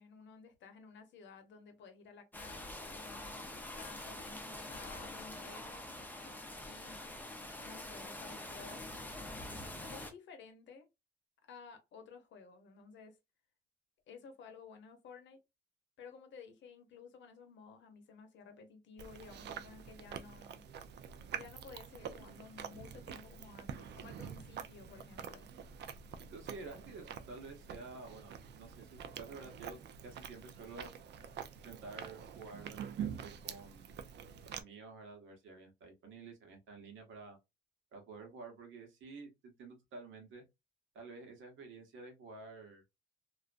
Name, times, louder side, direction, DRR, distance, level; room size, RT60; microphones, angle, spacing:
voice 1, 0.0-5.8 6.6-7.0 7.6-8.8 9.8-10.9 11.4-13.2 14.1-15.4 16.0-20.6 21.3-25.5, left 5 dB, 65° left, 0.7 m, -54 dB
sound 1, 2.3-10.1, left 1 dB, 10° left, 0.5 m, -45 dB
Chewing mastication, 19.0-34.6, right 8 dB, 60° right, 0.4 m, -46 dB
voice 2, 26.2-30.9 31.6-33.9 34.4-37.4 37.9-40.4 40.9-42.8, right 3 dB, 80° right, 1.0 m, -51 dB
2.4 x 2.1 x 2.4 m
cardioid pair, 90°, 20 cm